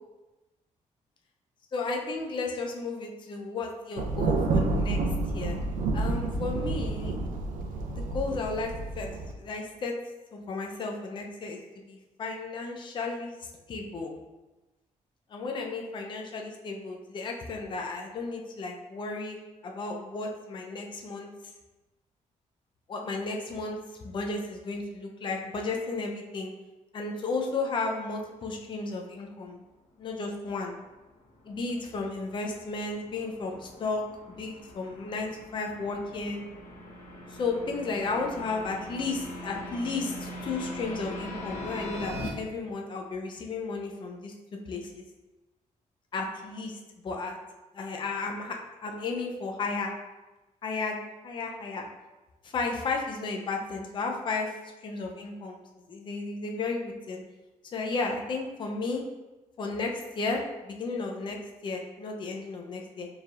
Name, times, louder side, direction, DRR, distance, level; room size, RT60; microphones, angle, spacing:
voice 1, 1.7-5.0 5.3-5.6 5.9-7.2 7.9-9.1 9.4-9.9 10.3-11.6 11.9-13.3 13.7-14.1 15.3-19.4 19.6-21.3 22.9-23.8 24.0-26.5 26.9-29.6 30.0-30.8 31.5-36.4 37.3-44.3 44.7-45.0 46.1-46.8 47.0-47.4 47.7-49.9 50.6-51.0 51.2-51.8 52.4-54.5 54.8-55.6 55.9-56.8 57.1-57.2 57.7-59.0 59.6-61.4 61.6-63.1, left 3 dB, 35° left, 2 dB, 0.4 m, -33 dB
Thunder, 4.0-9.3, right 3 dB, 85° right, 0.4 m, -29 dB
sound 1, 30.8-42.3, left 1 dB, 70° left, 0.9 m, -41 dB
4.4 x 3.3 x 2.4 m, 1.1 s
wide cardioid pair, 150°, 14 cm